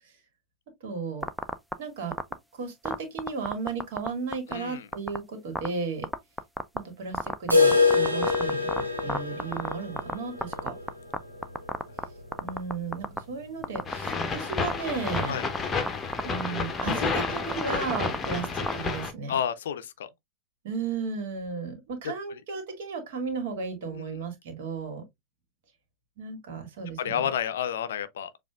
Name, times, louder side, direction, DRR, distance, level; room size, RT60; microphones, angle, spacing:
voice 1, 0.8-1.3 1.8-2.2 2.5-6.1 6.7-10.8 12.4-15.4 16.2-19.4 20.6-25.0 26.2-27.3, right 5 dB, 55° right, 1.8 m, -34 dB
sound 1, 1.2-1.7 2.1-2.3 2.9-4.1 4.3-4.5 4.9-5.2 5.6-5.7 6.0-6.8 7.1-10.1 10.4-11.2 11.4-12.0 12.3-13.2 13.6-14.2 14.5-14.7 15.1-15.6 15.9-16.5 16.8-18.7, right 1 dB, 5° right, 0.4 m, -29 dB
voice 2, 4.5-4.9 15.3-15.5 19.3-20.1 22.3-22.4 23.9-24.2 27.0-28.3, left 9 dB, 60° left, 0.5 m, -31 dB
sound 2, 7.5-13.3 13.6-13.7 14.1-14.2 14.7-14.8 15.6-15.7, left 4 dB, 85° right, 1.3 m, -26 dB
sound 3, 13.9-19.1, left 5 dB, 20° left, 0.8 m, -31 dB
7.0 x 2.5 x 2.3 m
figure-of-eight pair, 90°, 0 cm